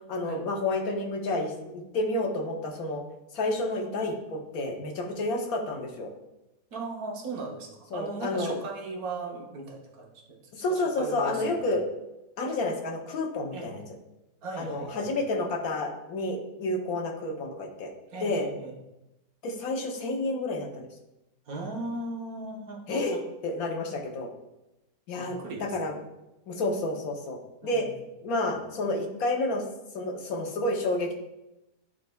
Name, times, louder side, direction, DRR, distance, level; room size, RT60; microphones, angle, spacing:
voice 1, 0.1-3.0 3.3-6.1 7.9-8.6 10.6-11.8 12.4-13.8 14.6-17.9 18.2-18.5 19.4-20.9 22.9-23.2 23.4-24.3 25.1-26.0 26.5-27.9 28.2-29.6 29.9-31.1, left 2 dB, 65° left, 2 dB, 1.2 m, -30 dB
voice 2, 6.7-11.6 13.5-13.7 14.4-15.1 18.1-18.7 21.5-23.2 25.1-25.8 27.6-27.9, right 3 dB, 65° right, 0 dB, 1.4 m, -38 dB
10.5 x 4.2 x 2.2 m, 0.94 s
omnidirectional pair, 1.7 m